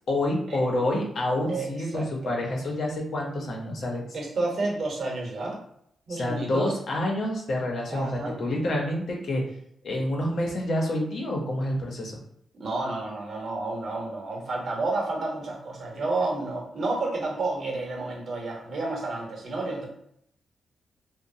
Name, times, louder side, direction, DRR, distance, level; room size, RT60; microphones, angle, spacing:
voice 1, 0.0-4.0 6.1-9.4 9.8-12.2, left 1 dB, 60° left, 0 dB, 0.7 m, -28 dB
voice 2, 1.5-2.3 4.1-5.6 6.1-6.7 7.9-8.4 12.6-19.9, right 2 dB, 55° right, -1 dB, 0.9 m, -30 dB
2.9 x 2.1 x 2.6 m, 0.72 s
wide cardioid pair, 130°, 0 cm